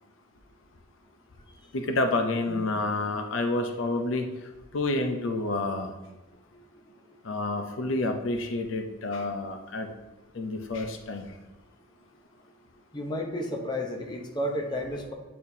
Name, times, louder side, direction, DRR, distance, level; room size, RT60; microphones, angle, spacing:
voice 1, 1.7-4.3 4.7-5.9 7.2-9.9 10.3-11.3, left 2 dB, 75° left, 4 dB, 0.6 m, -29 dB
voice 2, 12.9-15.1, left 1 dB, 20° left, 1 dB, 0.8 m, -32 dB
8.6 x 4.3 x 2.7 m, 1.1 s
head